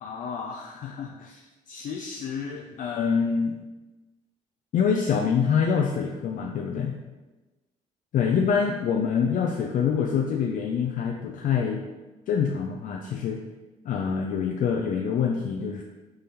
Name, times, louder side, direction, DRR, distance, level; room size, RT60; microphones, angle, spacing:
voice 1, 0.0-3.6 4.7-7.0 8.1-11.8 12.3-13.4 13.8-15.8, left 6 dB, 55° left, 2 dB, 0.4 m, -26 dB
3.6 x 3.3 x 2.9 m, 1.1 s
supercardioid pair, 55°, 16 cm